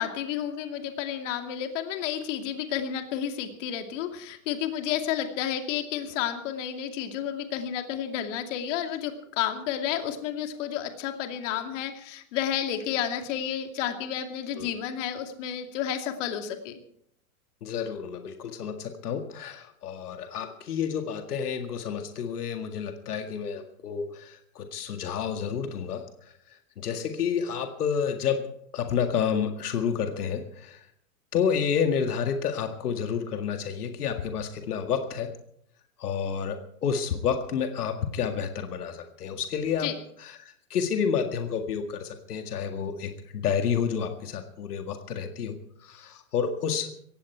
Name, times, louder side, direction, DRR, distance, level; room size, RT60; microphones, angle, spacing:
voice 1, 0.0-16.8 39.8-39.9, left 10 dB, 55° left, 5 dB, 2.6 m, -31 dB
voice 2, 17.6-28.5 28.7-30.9 31.3-35.4 36.0-39.9 40.2-46.9, left 7 dB, 85° left, 6 dB, 2.0 m, -30 dB
18.5 x 15.5 x 4.6 m, 0.69 s
hypercardioid pair, 145°, 44 cm